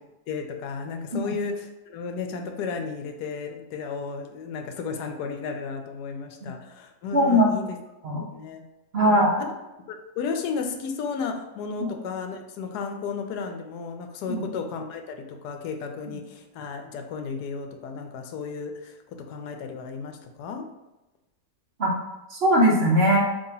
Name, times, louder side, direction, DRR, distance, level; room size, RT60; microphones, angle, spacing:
voice 1, 0.3-7.6 8.3-8.6 9.1-9.3 9.9-19.0 19.3-20.7, left 5 dB, 90° left, 5 dB, 1.1 m, -33 dB
voice 2, 7.1-7.5 8.0-8.3 8.9-9.4 11.8-11.9 14.3-14.4 16.1-16.2 21.8-21.9 22.3-23.2, equal, 50° right, -3 dB, 0.9 m, -20 dB
5.4 x 3.0 x 2.8 m, 0.99 s
omnidirectional pair, 1.7 m